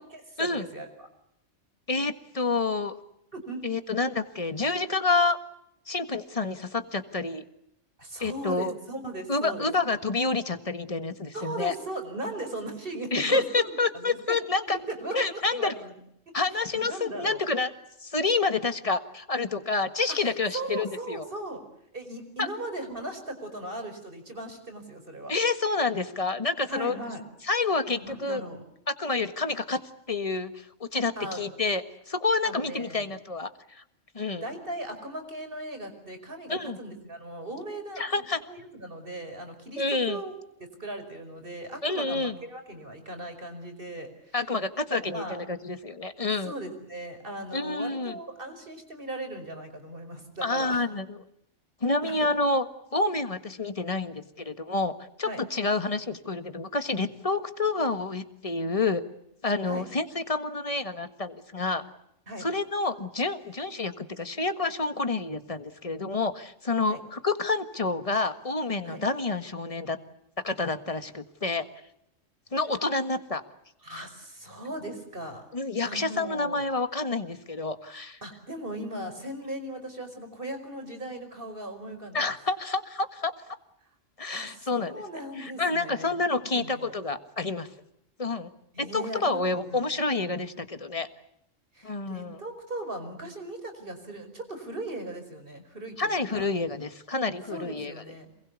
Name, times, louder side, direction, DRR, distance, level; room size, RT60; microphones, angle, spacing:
voice 1, 0.1-1.1 3.3-3.7 8.0-9.7 11.3-14.4 14.7-15.9 16.3-16.4 16.7-17.4 20.1-21.6 21.9-25.3 26.7-27.2 28.0-28.6 31.2-31.4 32.4-33.1 34.3-40.3 40.6-44.4 44.9-45.4 46.4-50.8 52.0-52.3 55.2-55.4 59.7-59.9 62.3-62.5 66.9-67.0 68.8-69.0 73.8-75.4 75.8-76.6 78.2-82.2 84.3-86.2 86.6-86.9 88.7-89.8 91.7-96.5 97.5-98.3, right 1 dB, 45° right, 7 dB, 5.4 m, -38 dB
voice 2, 1.9-3.0 3.6-5.4 5.9-7.4 8.2-8.7 9.3-11.7 13.1-14.8 15.1-15.7 16.3-17.7 18.0-21.2 22.4-22.5 25.3-27.0 27.4-28.4 28.9-29.8 30.1-33.8 34.1-34.4 36.5-36.8 38.0-38.4 39.8-40.2 41.8-42.4 44.3-46.5 47.5-48.2 50.4-51.2 51.8-52.6 52.9-54.9 55.2-59.0 59.4-61.8 62.4-70.0 70.4-71.7 72.5-73.4 75.5-78.2 82.1-83.3 84.2-85.0 85.4-87.7 88.2-88.5 88.8-91.1 91.8-92.4 96.0-97.9, left 3 dB, 30° left, 9 dB, 1.6 m, -28 dB
27.5 x 22.0 x 8.3 m, 0.78 s
omnidirectional pair, 1.3 m